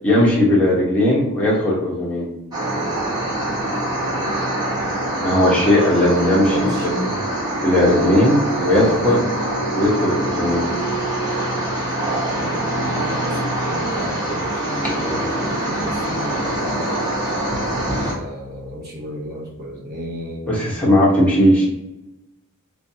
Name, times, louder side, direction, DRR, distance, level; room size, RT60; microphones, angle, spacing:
voice 1, 0.0-2.3 5.2-6.9 7.6-9.2 9.7-10.7 20.5-21.6, left 1 dB, 5° left, -6 dB, 1.0 m, -17 dB
sound 1, 2.5-18.1, right 1 dB, 20° right, 1.0 m, -24 dB
voice 2, 6.4-7.2 8.6-9.3 12.3-16.5 17.8-20.7, right 1 dB, 45° right, -2 dB, 0.9 m, -30 dB
4.6 x 2.5 x 2.7 m, 0.96 s
head